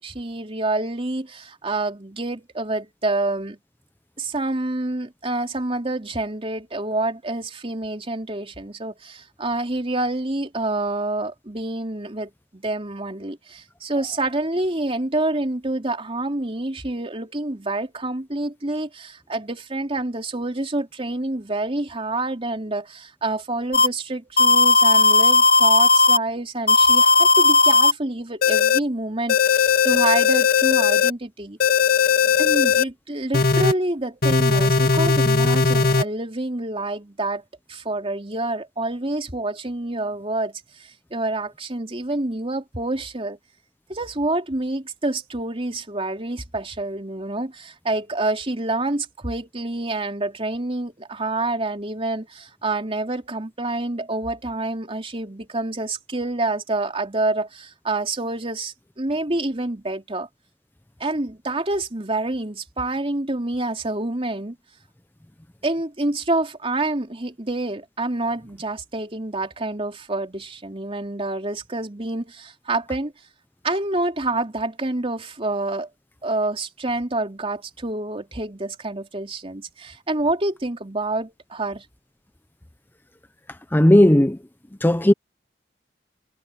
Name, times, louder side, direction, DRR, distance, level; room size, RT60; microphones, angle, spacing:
voice 1, 0.0-3.6 4.2-31.6 32.4-37.4 37.7-43.4 43.9-60.3 61.0-64.6 65.6-73.1 73.6-75.9 76.2-81.8, right 2 dB, 30° right, 3.3 m, -27 dB
sound 1, 23.7-23.9 24.4-26.2 26.7-27.9 28.4-28.8 29.3-31.1 31.6-32.8 33.3-33.7 34.2-36.0, left 4 dB, 55° left, 2.0 m, -17 dB
voice 2, 83.7-84.4 84.8-85.1, left 1 dB, 10° left, 0.6 m, -14 dB
head